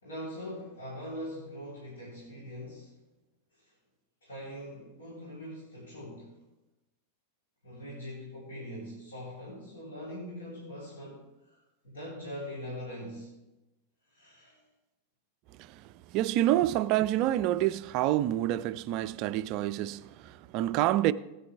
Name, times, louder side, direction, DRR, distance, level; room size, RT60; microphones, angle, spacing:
voice 1, 0.0-3.0 3.5-3.7 4.2-6.4 7.6-11.6 11.8-13.3 14.1-14.6, equal, 65° left, 3.5 m, -42 dB
voice 2, 15.6-21.1, right 14 dB, 40° right, 0.4 m, -28 dB
16.5 x 9.3 x 3.4 m
figure-of-eight pair, 90°, 0 cm